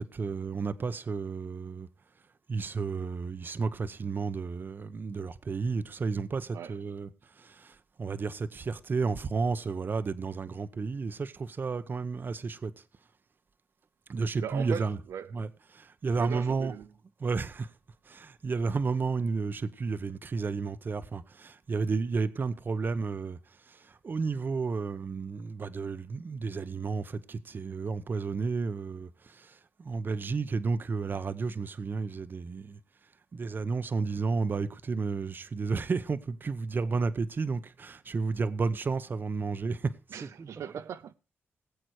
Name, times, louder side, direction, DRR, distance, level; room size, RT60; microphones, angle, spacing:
voice 1, 0.0-1.9 2.5-7.1 7.4-12.7 14.1-15.0 15.3-16.7 17.2-17.7 18.1-23.4 23.7-32.8 33.3-39.9 40.2-40.5, right 4 dB, 45° right, 0.9 m, -32 dB
voice 2, 14.4-15.5 16.1-16.9 40.1-41.1, right 8 dB, 80° right, 0.5 m, -39 dB
18.5 x 7.9 x 4.7 m
cardioid pair, 95°, 5 cm